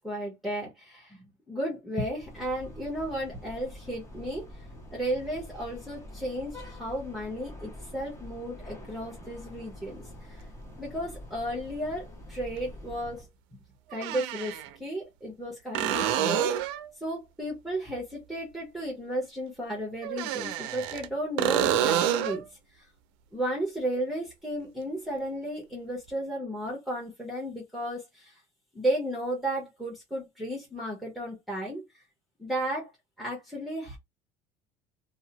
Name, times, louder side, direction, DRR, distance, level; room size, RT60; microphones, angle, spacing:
voice 1, 0.0-4.4 4.9-10.4 10.8-13.3 13.9-16.7 17.0-22.5 22.7-22.8 23.3-28.4 28.7-32.0 32.4-32.9 33.2-34.0, right 1 dB, ahead, 1.1 m, -34 dB
sound 1, 2.1-13.3, left 1 dB, 20° left, 1.0 m, -46 dB
sound 2, 10.4-10.5 12.6-12.7 13.9-14.7 15.7-16.9 20.0-21.1 21.4-22.4 26.1-26.2, right 10 dB, 80° right, 0.4 m, -28 dB
2.7 x 2.2 x 2.8 m
supercardioid pair, 105°, 14 cm